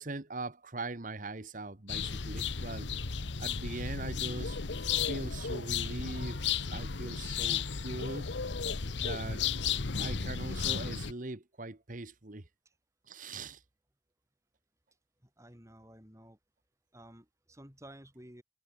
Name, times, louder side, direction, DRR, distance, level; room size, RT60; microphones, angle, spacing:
voice 1, 0.0-2.9 3.4-4.6 5.1-8.3 9.0-9.4 10.0-12.5 13.1-13.6, right 2 dB, 45° right, 1.5 m, -41 dB
sound 1, 1.9-11.1, left 6 dB, 80° left, 1.1 m, -34 dB
voice 2, 15.2-16.4 16.9-18.4, right 1 dB, 15° right, 6.0 m, -53 dB
head